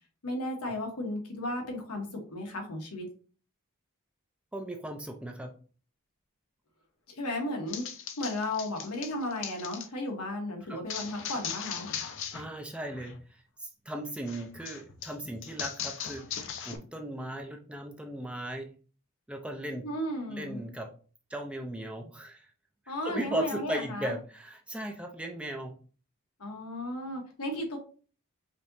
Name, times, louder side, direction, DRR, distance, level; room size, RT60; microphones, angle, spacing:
voice 1, 0.2-3.1 7.1-7.9 8.2-11.9 19.8-20.6 22.9-24.1 26.4-27.8, left 1 dB, 90° left, 2 dB, 1.1 m, -34 dB
voice 2, 4.5-5.5 10.7-10.8 12.3-18.7 19.3-19.8 20.3-20.9 21.3-22.5 23.1-25.7, right 1 dB, 5° right, 4 dB, 0.3 m, -37 dB
sound 1, 7.7-9.9 10.9-12.5 12.7-13.2 14.3-16.8, left 8 dB, 55° left, 0.5 m, -39 dB
5.1 x 2.8 x 2.6 m, 0.40 s
head